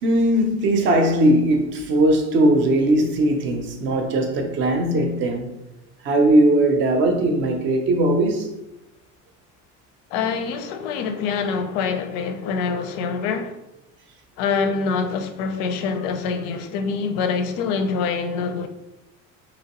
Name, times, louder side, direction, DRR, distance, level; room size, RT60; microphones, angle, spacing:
voice 1, 0.0-5.5 6.0-8.5, right 1 dB, 35° right, 0.4 m, -19 dB
voice 2, 10.1-13.6 14.4-18.7, left 5 dB, 90° left, 0.5 m, -25 dB
2.9 x 2.9 x 2.9 m
cardioid pair, 170°, 33 cm